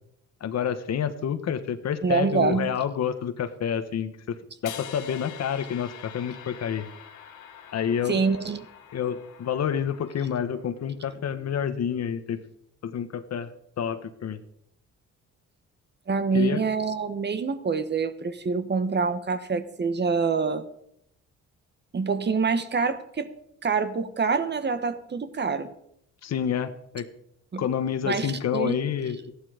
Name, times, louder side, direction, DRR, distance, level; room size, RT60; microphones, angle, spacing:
voice 1, 0.4-4.3 4.6-6.9 7.7-8.2 8.9-12.4 12.8-13.5 13.8-14.4 16.3-16.6 26.2-27.1 27.6-29.3, left 8 dB, 60° left, 11 dB, 1.4 m, -28 dB
voice 2, 2.0-2.7 8.1-8.6 16.1-20.6 21.9-23.3 23.6-25.7 27.5-27.6 28.0-28.8, right 5 dB, 35° right, 11 dB, 1.2 m, -26 dB
sound 1, 4.6-10.8, left 9 dB, 85° left, 1.7 m, -45 dB
15.0 x 11.5 x 5.1 m, 0.75 s
cardioid pair, 90°, 30 cm